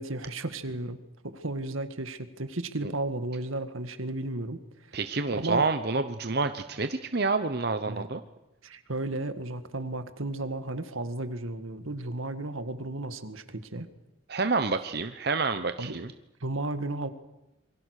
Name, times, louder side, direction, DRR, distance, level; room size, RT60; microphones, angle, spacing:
voice 1, 0.0-4.6 4.9-5.0 5.3-5.7 7.9-8.1 8.6-13.9 15.8-16.0 16.4-17.1, right 2 dB, 80° right, 10 dB, 1.9 m, -34 dB
voice 2, 4.9-8.2 14.3-16.1, right 3 dB, 50° right, 9 dB, 0.9 m, -28 dB
27.5 x 23.5 x 6.6 m, 0.95 s
head